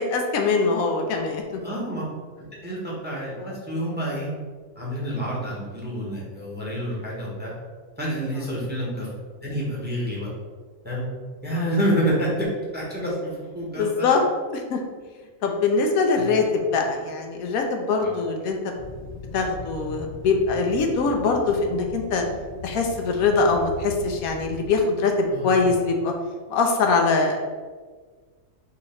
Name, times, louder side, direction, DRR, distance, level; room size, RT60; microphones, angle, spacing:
voice 1, 0.0-1.4 3.4-3.5 11.5-11.6 13.7-14.2 14.5-14.8 15.4-18.6 19.3-22.2 22.6-26.1 26.5-27.4, left 4 dB, 80° left, 3 dB, 1.1 m, -23 dB
voice 2, 1.6-2.0 2.5-4.3 4.7-7.5 8.0-9.1 9.4-10.3 10.8-11.1 11.4-12.5 12.7-14.1 16.2-16.3 18.0-18.1 25.3-25.7, equal, 10° right, -5 dB, 0.8 m, -28 dB
sound 1, 18.8-24.8, left 4 dB, 60° left, 0.9 m, -39 dB
3.9 x 2.9 x 4.2 m, 1.5 s
omnidirectional pair, 1.5 m